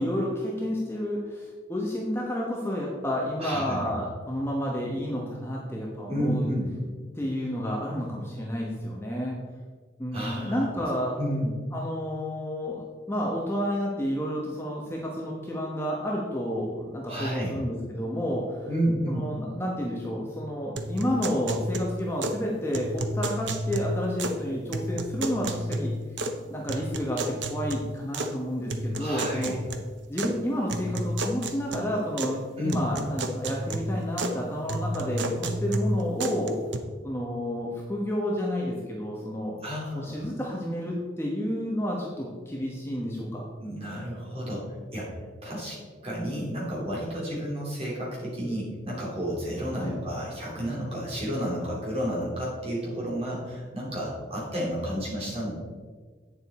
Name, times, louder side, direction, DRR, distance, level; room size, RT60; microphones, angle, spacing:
voice 1, 0.0-6.5 7.1-9.4 10.0-11.2 11.7-12.8 13.1-18.7 19.1-25.9 26.5-27.2 27.5-29.6 30.1-32.4 32.6-36.6 37.0-39.6 39.9-43.5 49.8-49.9, equal, 15° left, -3 dB, 1.0 m, -30 dB
voice 2, 3.4-4.0 6.1-6.7 10.1-10.7 11.2-11.6 17.1-17.6 18.7-19.3 28.9-29.5 32.6-32.8 39.6-40.3 43.6-44.6 44.9-45.1 45.4-45.8 46.0-55.5, equal, 30° right, -5 dB, 2.9 m, -31 dB
sound 1, 20.8-22.4 22.7-24.4 24.7-26.4 26.7-28.3 28.7-30.3 30.7-32.4 32.7-34.4 34.7-36.8, right 1 dB, 75° right, 0.7 m, -31 dB
8.8 x 7.0 x 4.2 m, 1.5 s
head